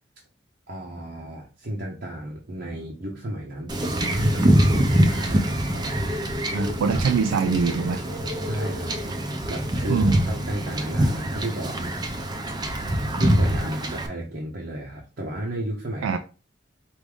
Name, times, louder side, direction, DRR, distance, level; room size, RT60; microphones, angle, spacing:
voice 1, 0.7-6.1 6.5-7.0 8.4-9.0 9.5-12.0 13.2-16.2, right 1 dB, 55° right, -2 dB, 0.8 m, -33 dB
Wind / Ocean / Boat Water vehicle, 3.7-14.1, equal, 20° right, 0.5 m, -24 dB
voice 2, 6.5-8.0 9.9-10.3 16.0-16.2, right 5 dB, 90° right, 8 dB, 0.3 m, -23 dB
4.7 x 2.6 x 3.5 m, 0.34 s
head